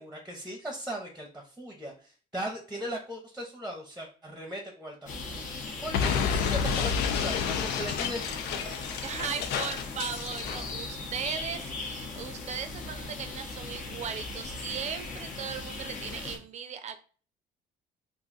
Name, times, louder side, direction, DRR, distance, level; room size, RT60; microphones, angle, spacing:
voice 1, 0.0-5.4 5.8-8.6, equal, 5° right, 1 dB, 0.8 m, -38 dB
sound 1, 5.1-16.4, left 3 dB, 50° left, 0.8 m, -39 dB
Explosion, 5.9-10.7, left 7 dB, 75° left, 0.4 m, -30 dB
voice 2, 9.0-17.0, right 7 dB, 45° right, 9 dB, 0.5 m, -37 dB
2.5 x 2.3 x 4.0 m, 0.39 s
cardioid pair, 110°, 17 cm